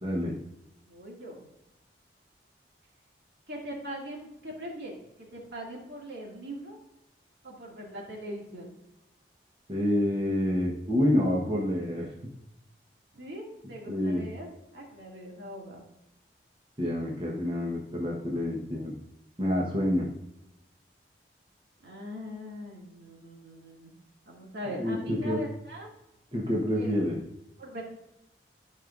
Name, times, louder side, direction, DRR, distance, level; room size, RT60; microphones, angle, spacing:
voice 1, 0.0-0.4 9.7-12.3 13.9-14.3 16.8-18.9 19.4-20.1 24.8-25.4 26.3-27.2, left 1 dB, 30° right, -3 dB, 1.1 m, -28 dB
voice 2, 0.9-1.5 3.5-5.0 5.3-6.8 7.4-8.8 13.1-15.8 21.8-23.9 24.3-25.9 26.7-26.9 27.6-27.8, equal, 70° right, -2 dB, 2.3 m, -41 dB
12.5 x 5.2 x 2.5 m, 0.88 s
head